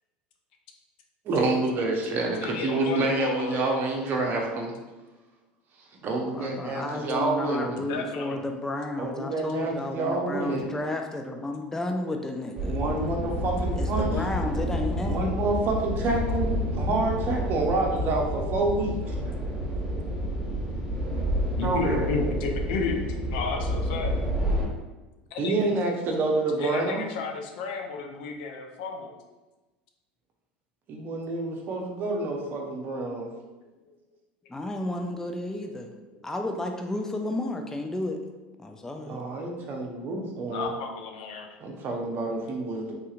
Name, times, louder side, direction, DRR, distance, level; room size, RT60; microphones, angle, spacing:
voice 1, 1.2-4.7 6.0-7.8 9.0-10.7 12.7-14.1 15.1-19.1 21.6-22.1 25.4-27.0 30.9-33.3 39.0-40.7 41.6-42.9, right 2 dB, 45° right, 1 dB, 0.8 m, -28 dB
voice 2, 2.4-3.9 7.7-8.4 21.6-23.0 23.3-24.2 25.3-25.7 26.6-29.1 35.1-35.2 35.6-36.2 40.4-41.5, left 4 dB, 70° left, 3 dB, 0.5 m, -33 dB
voice 3, 6.3-12.8 13.7-15.3 34.5-35.9 36.2-38.2 38.6-39.2, left 2 dB, 10° left, 4 dB, 0.3 m, -32 dB
sound 1, 12.5-24.6, equal, 15° right, 1.2 m, -29 dB
3.6 x 2.7 x 2.4 m, 1.1 s
hypercardioid pair, 90°, 5 cm